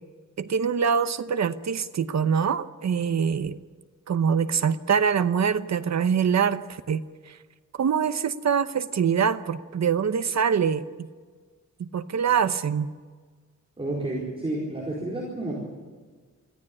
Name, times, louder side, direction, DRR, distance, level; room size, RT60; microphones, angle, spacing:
voice 1, 0.4-3.6 4.1-7.0 7.8-11.1 11.8-12.9, right 7 dB, 60° right, 11 dB, 0.9 m, -24 dB
voice 2, 13.8-15.6, right 2 dB, 20° right, -5 dB, 4.5 m, -30 dB
23.0 x 14.5 x 10.0 m, 1.5 s
wide cardioid pair, 175°, 31 cm